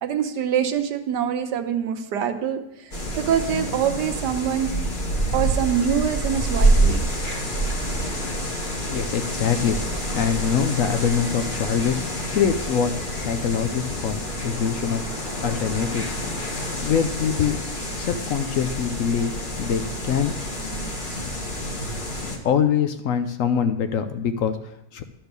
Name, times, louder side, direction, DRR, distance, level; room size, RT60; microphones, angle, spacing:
voice 1, 0.0-4.7 5.3-7.1, right 8 dB, 75° right, 7 dB, 1.4 m, -25 dB
sound 1, 2.9-22.4, right 1 dB, 30° left, 1.3 m, -27 dB
voice 2, 8.9-9.8 10.1-12.0 12.3-16.1 16.8-17.6 18.0-20.4 22.4-25.0, left 7 dB, 70° left, 9 dB, 0.7 m, -24 dB
12.0 x 4.4 x 6.7 m, 0.84 s
omnidirectional pair, 1.9 m